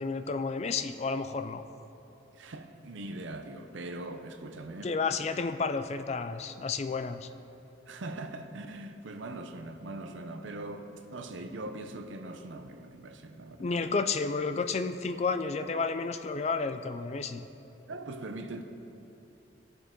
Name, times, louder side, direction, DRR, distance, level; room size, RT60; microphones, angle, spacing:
voice 1, 0.0-1.6 4.8-7.3 13.6-17.5, left 4 dB, 35° left, 0.4 m, -31 dB
voice 2, 2.3-4.9 7.9-13.8 17.9-18.6, right 2 dB, 80° right, 0.7 m, -41 dB
15.5 x 6.7 x 3.8 m
head